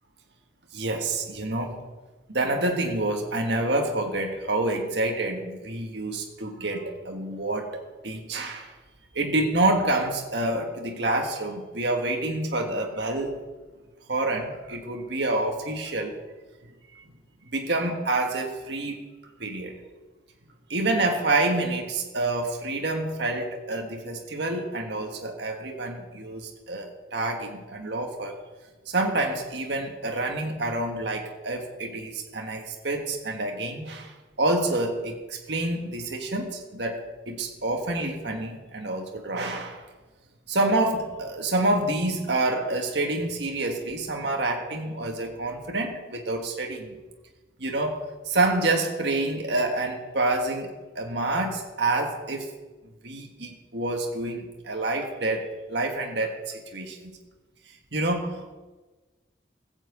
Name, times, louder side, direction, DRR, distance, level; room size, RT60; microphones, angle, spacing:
voice 1, 0.7-1.8 2.3-8.7 9.1-13.4 14.1-16.2 17.5-19.1 19.4-19.7 20.7-28.4 28.9-39.8 40.5-47.0 47.6-52.5 53.0-57.1 57.9-58.5, right 2 dB, 65° right, 2 dB, 1.7 m, -28 dB
15.5 x 6.2 x 8.0 m, 1.3 s
head